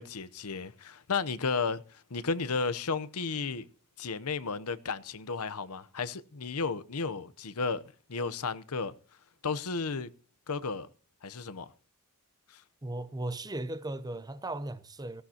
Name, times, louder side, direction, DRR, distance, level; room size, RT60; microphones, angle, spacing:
voice 1, 0.0-3.7 4.0-7.8 8.1-8.9 9.4-10.1 10.5-10.9 11.2-11.7 12.5-12.6, left 4 dB, 80° left, 0.9 m, -33 dB
voice 2, 12.8-15.2, right 2 dB, 15° right, 0.8 m, -37 dB
18.0 x 16.0 x 2.9 m
head